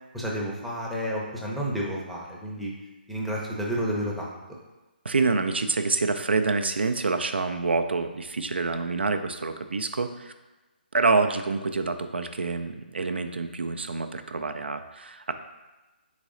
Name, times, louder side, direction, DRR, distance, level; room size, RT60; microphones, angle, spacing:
voice 1, 0.1-2.7 3.1-4.4, equal, ahead, -4 dB, 0.6 m, -30 dB
voice 2, 5.0-10.3 10.9-15.3, right 3 dB, 85° right, 8 dB, 0.3 m, -27 dB
4.0 x 3.1 x 3.7 m, 1.1 s
figure-of-eight pair, 145°, 6 cm